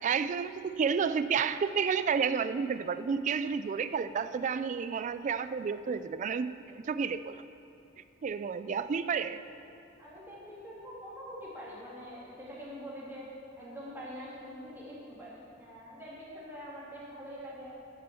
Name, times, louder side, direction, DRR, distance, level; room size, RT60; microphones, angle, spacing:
voice 1, 0.0-7.4 8.2-9.4, right 6 dB, 40° right, 13 dB, 0.3 m, -31 dB
voice 2, 10.0-17.8, equal, 10° right, -7 dB, 2.6 m, -45 dB
10.5 x 6.3 x 7.0 m, 2.7 s
head